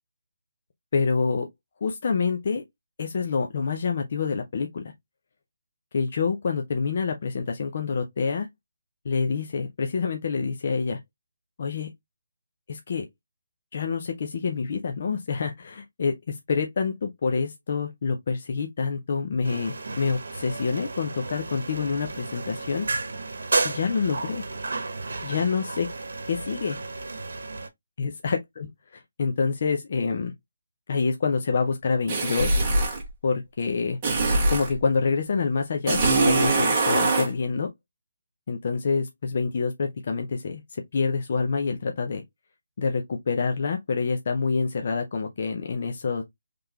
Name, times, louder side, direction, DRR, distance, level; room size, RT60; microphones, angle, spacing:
voice 1, 0.9-1.5 1.8-2.6 3.0-4.9 5.9-8.5 9.0-11.0 11.6-11.9 12.7-13.1 13.7-22.9 23.6-24.4 25.2-25.9 26.3-26.8 28.0-30.3 30.9-32.6 33.2-34.0 34.5-37.7 38.5-42.2 42.8-46.2, left 5 dB, 35° left, 0.6 m, -27 dB
sound 1, 19.4-27.7, right 3 dB, 65° right, 1.0 m, -32 dB
sound 2, 32.1-33.0 34.0-34.7 35.9-37.3, right 2 dB, 15° right, 1.2 m, -22 dB
3.9 x 3.3 x 2.8 m
hypercardioid pair, 175°, 0 cm